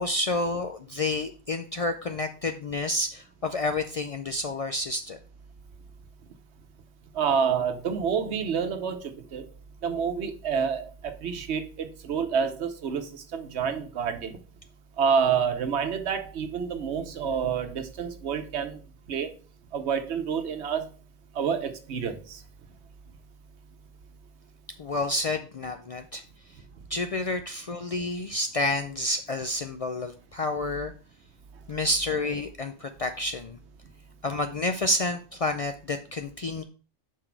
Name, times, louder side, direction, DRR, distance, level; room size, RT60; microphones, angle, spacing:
voice 1, 0.0-5.2 24.8-26.2 26.9-30.9 31.7-33.6 34.2-36.6, left 2 dB, 50° left, 0.4 m, -29 dB
voice 2, 7.1-9.5 9.8-14.4 15.0-18.8 19.1-19.3 19.7-20.9 21.4-22.4, right 6 dB, 85° right, 1.1 m, -28 dB
5.9 x 4.7 x 4.5 m
omnidirectional pair, 1.1 m